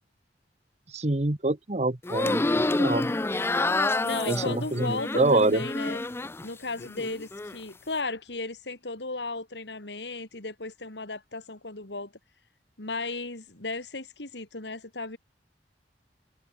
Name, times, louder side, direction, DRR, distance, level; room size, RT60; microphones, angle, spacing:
voice 1, 0.9-2.4 2.8-3.1 4.3-5.6, right 2 dB, 40° right, 1.2 m, -25 dB
sound 1, 2.0-6.5 6.8-7.6, left 2 dB, 15° left, 0.4 m, -28 dB
voice 2, 4.0-6.0 6.4-12.1 12.8-15.2, left 3 dB, 70° left, 2.8 m, -35 dB
head